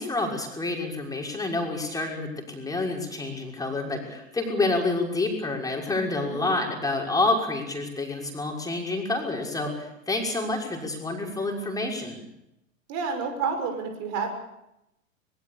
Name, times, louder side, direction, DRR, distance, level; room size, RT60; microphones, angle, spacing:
voice 1, 0.0-12.2, left 2 dB, 10° left, 1 dB, 6.1 m, -28 dB
voice 2, 6.2-6.6 12.9-14.3, right 5 dB, 40° right, 5 dB, 6.3 m, -30 dB
24.5 x 22.0 x 6.9 m, 0.86 s
figure-of-eight pair, 90°, 40 cm